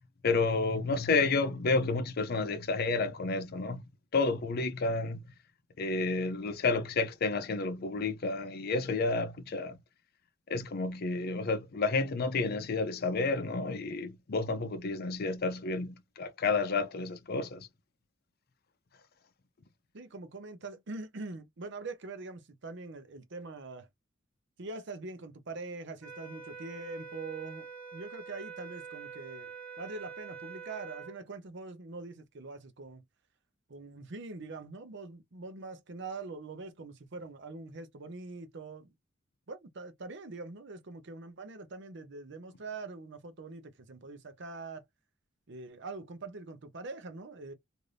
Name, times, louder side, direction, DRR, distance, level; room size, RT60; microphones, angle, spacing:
voice 1, 0.2-3.8 4.1-5.2 5.8-9.8 10.5-17.7, left 3 dB, 50° left, 0.5 m, -30 dB
voice 2, 19.9-23.9 24.6-29.5 29.8-33.0 33.7-38.9 39.5-44.8 45.5-47.5, right 3 dB, 60° right, 0.7 m, -43 dB
sound 1, 26.0-31.2, right 6 dB, 10° left, 0.9 m, -45 dB
2.6 x 2.5 x 3.2 m
head